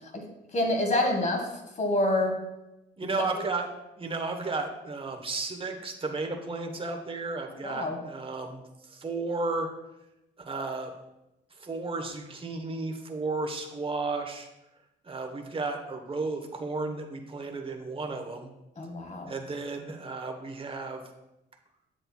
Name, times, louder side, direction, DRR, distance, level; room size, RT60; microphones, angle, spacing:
voice 1, 0.5-1.4 1.8-2.3 3.0-3.1 7.6-8.0 18.8-19.3, left 1 dB, 35° left, 3 dB, 1.7 m, -27 dB
voice 2, 3.0-3.7 4.0-8.6 8.9-9.7 10.4-10.9 11.6-14.5 15.0-18.5 19.3-21.0, right 3 dB, 25° right, 4 dB, 1.1 m, -33 dB
8.1 x 7.7 x 2.3 m, 0.93 s
cardioid pair, 90°, 20 cm